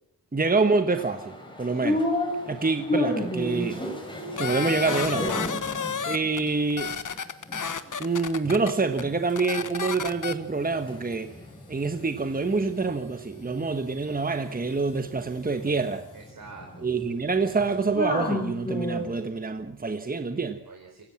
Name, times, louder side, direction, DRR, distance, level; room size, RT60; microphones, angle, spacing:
voice 1, 0.3-2.0 2.5-3.8 4.4-5.3 6.0-6.9 8.0-11.3 11.7-16.0 16.8-20.6, right 4 dB, 20° right, 8 dB, 1.4 m, -26 dB
sound 1, 0.9-8.0 8.4-9.4 9.6-19.2, left 1 dB, 10° left, 5.4 m, -33 dB
sound 2, 4.4-6.4 6.7-8.7 9.0-9.1 9.4-10.3, left 6 dB, 50° left, 1.3 m, -31 dB
voice 2, 5.9-6.2 16.1-16.9 20.7-21.0, right 4 dB, 55° right, 1 dB, 4.4 m, -47 dB
24.0 x 17.0 x 7.4 m, 0.67 s
wide cardioid pair, 120°, 39 cm